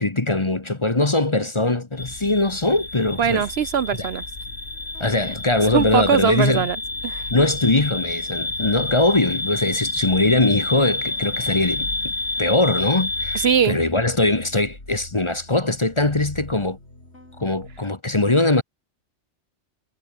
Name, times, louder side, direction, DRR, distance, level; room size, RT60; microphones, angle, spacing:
voice 1, 0.0-3.4 4.0-4.1 5.0-6.7 7.3-12.1 12.4-16.8 17.4-18.6, left 2 dB, 25° left, 1.2 m, -21 dB
sound 1, 2.0-13.6, left 2 dB, 85° left, 5.3 m, -29 dB
sound 2, 3.0-17.8, left 1 dB, 65° left, 7.0 m, -42 dB
voice 2, 3.2-4.2 5.7-6.8 7.0-7.2 13.3-13.8, right 7 dB, 60° right, 1.0 m, -21 dB
omnidirectional pair, 1.2 m